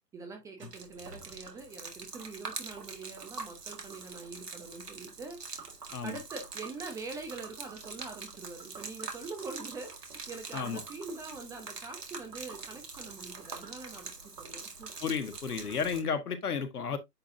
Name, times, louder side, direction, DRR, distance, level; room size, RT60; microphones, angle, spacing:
voice 1, 0.1-5.4 6.0-14.1 14.4-14.9, right 3 dB, 5° right, 0.7 m, -44 dB
Gurgling / Liquid, 0.6-16.0, right 4 dB, 80° right, 2.0 m, -44 dB
voice 2, 15.0-17.0, left 6 dB, 70° left, 1.7 m, -32 dB
9.9 x 3.9 x 2.6 m
figure-of-eight pair, 130°, 47 cm